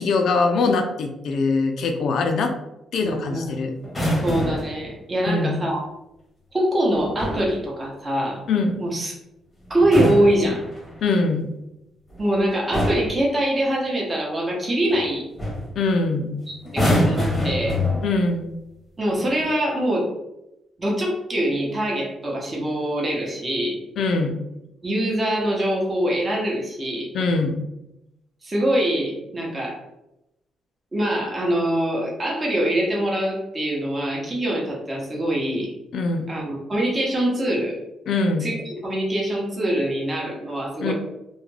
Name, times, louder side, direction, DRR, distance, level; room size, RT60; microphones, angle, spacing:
voice 1, 0.0-2.5 2.9-3.7 5.2-5.6 8.5-8.7 11.0-11.5 15.8-16.4 18.0-18.5 24.0-24.4 27.1-27.6 35.9-36.3 38.1-38.5 40.8-40.9, left 3 dB, 65° left, 4 dB, 0.3 m, -22 dB
voice 2, 3.0-3.6 4.2-5.8 6.5-8.4 8.8-9.1 9.7-10.6 12.2-15.3 16.5-17.8 19.0-20.1 20.8-23.7 24.8-27.1 28.4-29.8 30.9-35.7 36.3-37.8 38.4-40.9, right 1 dB, 25° right, -3 dB, 0.7 m, -24 dB
sound 1, 3.8-4.8 6.9-7.5 9.7-11.1 12.1-12.3 12.7-13.2 14.9-15.1 15.4-15.7 16.6-18.3 19.2-19.5, left 1 dB, 15° left, 0.8 m, -24 dB
2.3 x 2.2 x 3.1 m, 0.89 s
cardioid pair, 120°, 0 cm